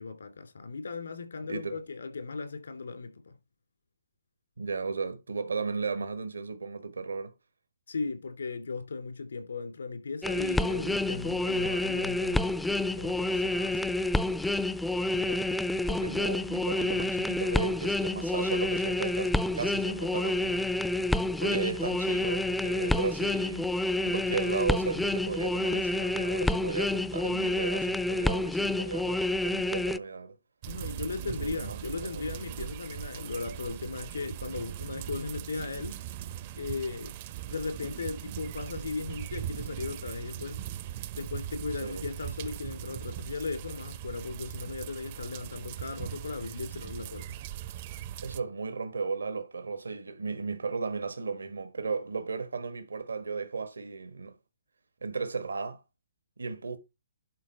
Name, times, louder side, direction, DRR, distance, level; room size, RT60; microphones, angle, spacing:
voice 1, 0.0-3.4 7.9-14.0 30.7-36.0 36.6-37.1 37.5-40.6 41.1-47.4, left 4 dB, 75° left, 2.8 m, -37 dB
voice 2, 1.4-1.8 4.6-7.3 15.1-15.5 15.8-20.7 21.4-23.7 24.0-30.4 31.3-32.4 41.8-42.0 48.2-54.3 55.0-55.8 56.4-56.8, right 4 dB, 80° right, 1.4 m, -35 dB
sound 1, 10.2-30.0, left 2 dB, 5° left, 0.5 m, -29 dB
sound 2, 30.6-48.4, right 12 dB, 40° right, 0.6 m, -40 dB
11.5 x 4.4 x 4.3 m
figure-of-eight pair, 135°, 0 cm